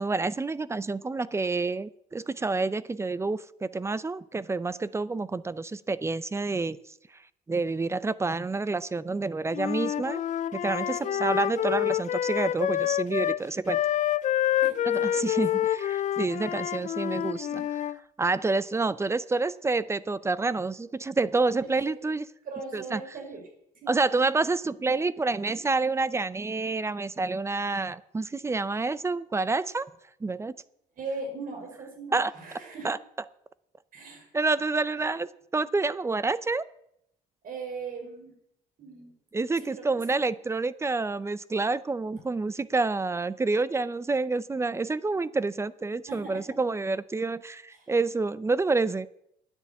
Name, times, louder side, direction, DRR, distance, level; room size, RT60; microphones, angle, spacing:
voice 1, 0.0-6.8 7.5-10.2 10.5-13.8 14.9-17.6 18.2-22.2 22.7-23.0 23.9-29.9 30.2-30.5 32.1-32.3 32.8-33.0 34.3-35.3 35.5-36.6 39.3-49.1, right 3 dB, 15° right, 18 dB, 0.6 m, -28 dB
Wind instrument woodwind instrument, 9.5-13.4 13.7-18.0, left 12 dB, 45° left, 0.5 m, -28 dB
voice 2, 11.0-11.6 12.8-12.9 14.6-15.4 17.5-17.7 21.7-22.1 22.4-23.4 23.8-24.0 25.5-25.6 31.0-32.9 33.9-34.3 37.4-38.3 38.8-39.1 39.6-40.2 46.1-46.6 47.7-47.9, right 4 dB, 55° right, 3 dB, 5.4 m, -40 dB
10.0 x 10.0 x 8.3 m, 0.76 s
cardioid pair, 110°, 17 cm